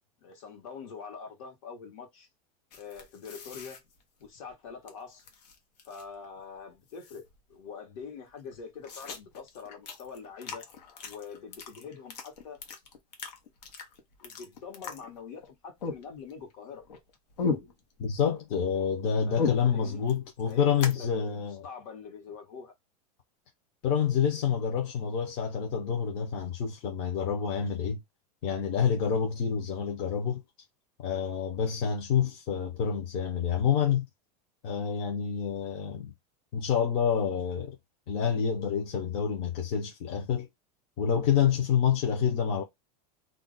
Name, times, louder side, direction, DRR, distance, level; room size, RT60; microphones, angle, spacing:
voice 1, 0.2-2.3 2.7-3.8 4.2-5.2 5.9-10.6 11.0-12.6 14.2-16.8 19.3-20.0 20.5-22.7, left 5 dB, 60° left, 1.1 m, -44 dB
sound 1, 2.7-4.9 5.2-6.2 6.5-6.6 6.9-7.5 8.0-8.1 8.3-15.5 15.8-16.5 16.8-18.3 18.6-21.0, left 5 dB, 90° left, 0.9 m, -38 dB
voice 2, 18.0-21.7 23.8-28.0 28.4-30.4 31.0-34.1 34.6-36.1 36.5-37.8 38.1-40.5 41.0-42.6, left 7 dB, 30° left, 0.5 m, -28 dB
2.4 x 2.1 x 3.7 m
supercardioid pair, 180°, 20 cm